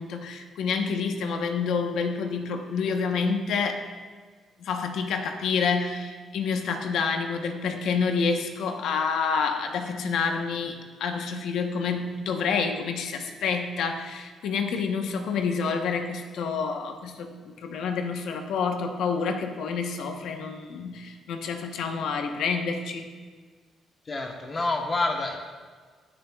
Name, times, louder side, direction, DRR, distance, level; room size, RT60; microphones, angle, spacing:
voice 1, 0.0-3.9 4.6-23.1, left 5 dB, 80° left, 5 dB, 1.0 m, -28 dB
voice 2, 24.1-25.4, left 2 dB, 35° left, 2 dB, 1.1 m, -27 dB
20.5 x 6.9 x 2.4 m, 1.5 s
cardioid pair, 90°, 0 cm